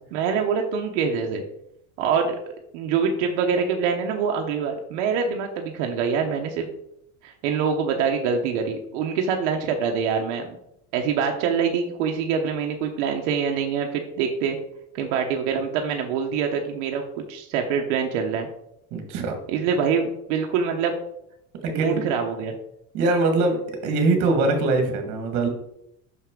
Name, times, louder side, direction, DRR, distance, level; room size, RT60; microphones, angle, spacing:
voice 1, 0.1-1.4 2.0-2.4 2.7-6.7 7.2-10.6 10.9-14.6 14.9-18.5 19.5-20.9 21.7-22.5, right 6 dB, 90° right, 2 dB, 1.0 m, -25 dB
voice 2, 18.9-19.3 21.6-22.0 22.9-25.5, right 3 dB, 55° right, 5 dB, 1.7 m, -22 dB
5.9 x 5.8 x 3.7 m, 0.76 s
cardioid pair, 155°, 35 cm